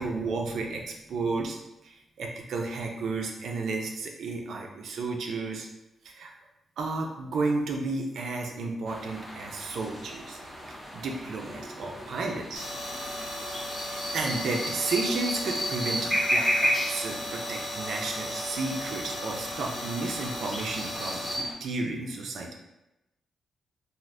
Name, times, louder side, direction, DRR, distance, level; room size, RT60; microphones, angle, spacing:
voice 1, 0.0-1.6 1.8-5.7 6.0-6.3 6.8-10.4 10.9-12.7 13.7-22.5, right 3 dB, 65° right, 1 dB, 0.5 m, -32 dB
sound 1, 8.8-21.5, equal, ahead, 0.6 m, -34 dB
sound 2, 12.5-21.4, equal, 60° left, 0.6 m, -36 dB
3.4 x 2.5 x 2.5 m, 0.94 s
wide cardioid pair, 165°, 0 cm